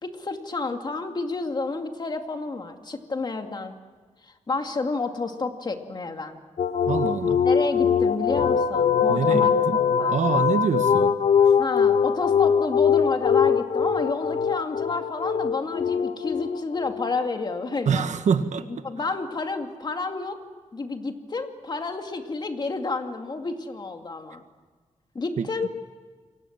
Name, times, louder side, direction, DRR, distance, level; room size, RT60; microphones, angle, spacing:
voice 1, 0.0-3.7 4.2-6.4 7.4-9.6 10.0-10.4 11.6-18.0 18.8-20.4 20.7-24.4 25.1-25.7, left 3 dB, 35° left, 5 dB, 2.4 m, -30 dB
sound 1, 6.6-17.3, left 7 dB, 65° left, 1.2 m, -22 dB
voice 2, 6.9-7.4 9.1-9.8 10.1-11.2 17.8-18.6 25.4-25.5, right 6 dB, 75° right, 9 dB, 1.6 m, -25 dB
29.0 x 24.0 x 7.4 m, 1.4 s
wide cardioid pair, 130°, 12 cm